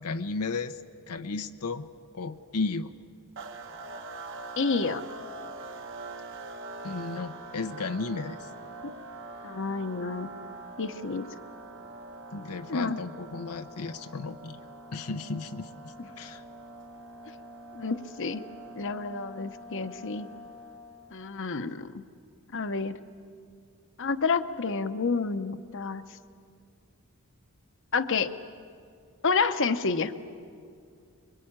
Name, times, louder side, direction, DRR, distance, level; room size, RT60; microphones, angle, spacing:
voice 1, 0.0-0.8 1.1-1.9 2.1-2.9 6.8-8.5 12.3-14.6 14.9-16.4, left 3 dB, 85° left, 7 dB, 0.8 m, -34 dB
sound 1, 3.4-21.2, right 2 dB, 60° right, 1.4 m, -44 dB
voice 2, 4.6-5.0 8.8-8.9 9.4-10.3 10.8-11.3 12.7-13.0 16.0-16.1 17.7-18.4 18.7-20.3 21.1-22.0 22.5-23.0 24.0-26.0 27.9-28.3 29.2-30.1, left 4 dB, 60° left, 10 dB, 0.9 m, -29 dB
25.5 x 22.5 x 8.8 m, 2.3 s
head